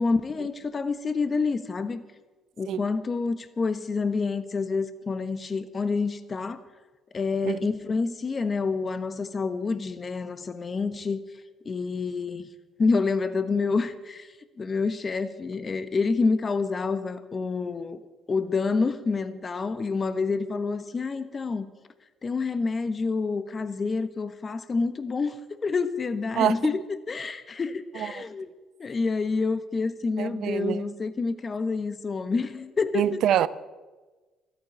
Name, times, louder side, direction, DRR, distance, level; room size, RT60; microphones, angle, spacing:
voice 1, 0.0-2.0 2.6-6.6 7.1-11.2 11.6-12.5 12.8-18.0 18.3-21.7 22.2-25.4 25.6-26.8 27.1-28.5 28.8-33.2, left 4 dB, 40° left, 1.2 m, -28 dB
voice 2, 30.2-30.9 32.9-33.5, right 11 dB, 70° right, 0.6 m, -25 dB
13.5 x 9.4 x 9.4 m
supercardioid pair, 70°, 0 cm